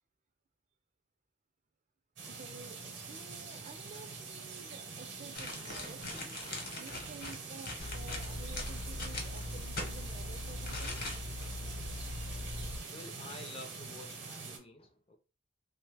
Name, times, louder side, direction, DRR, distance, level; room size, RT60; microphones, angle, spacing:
sound 1, 2.2-14.6, right 4 dB, 65° right, 0.8 m, -45 dB
voice 1, 2.3-6.1 6.7-11.0 12.2-12.6, right 5 dB, 40° right, 0.4 m, -52 dB
sound 2, 5.3-9.9 10.6-11.4 11.8-11.9, left 3 dB, 50° left, 0.9 m, -41 dB
sound 3, 7.8-12.8, left 1 dB, 85° left, 0.8 m, -41 dB
voice 2, 12.8-15.2, left 2 dB, 30° left, 0.4 m, -50 dB
2.8 x 2.1 x 3.3 m
head